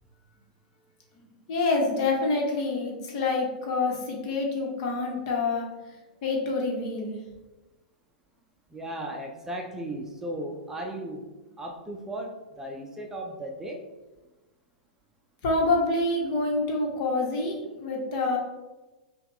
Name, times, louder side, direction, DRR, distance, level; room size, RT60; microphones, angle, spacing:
voice 1, 1.5-6.0 6.2-7.2 15.4-18.4, left 3 dB, 50° left, 0 dB, 1.2 m, -27 dB
voice 2, 8.7-11.3 11.6-13.8, right 1 dB, 10° right, 0 dB, 0.5 m, -36 dB
5.5 x 2.4 x 3.6 m, 1.1 s
hypercardioid pair, 115°, 5 cm